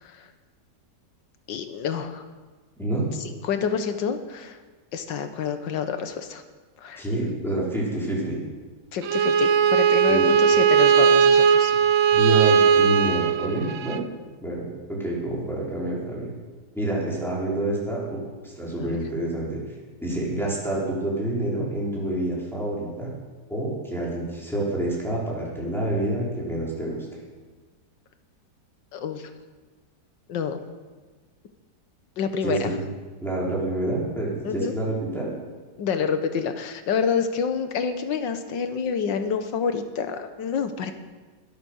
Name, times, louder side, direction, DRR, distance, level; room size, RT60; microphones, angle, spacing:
voice 1, 1.5-2.2 3.4-4.6 4.9-6.4 6.8-7.0 8.9-11.7 18.8-19.0 28.9-29.3 30.3-30.6 32.2-32.7 34.4-34.7 35.8-40.9, left 6 dB, 80° left, 8 dB, 1.8 m, -27 dB
voice 2, 2.8-3.1 7.0-8.4 10.1-10.5 12.1-14.0 14.4-16.3 16.7-18.2 18.4-19.6 20.0-23.1 23.5-27.0 32.4-32.8 33.2-35.3, right 1 dB, ahead, -6 dB, 4.7 m, -27 dB
Bowed string instrument, 9.0-14.0, right 7 dB, 60° right, 0.8 m, -18 dB
21.5 x 8.4 x 6.4 m, 1.4 s
omnidirectional pair, 1.9 m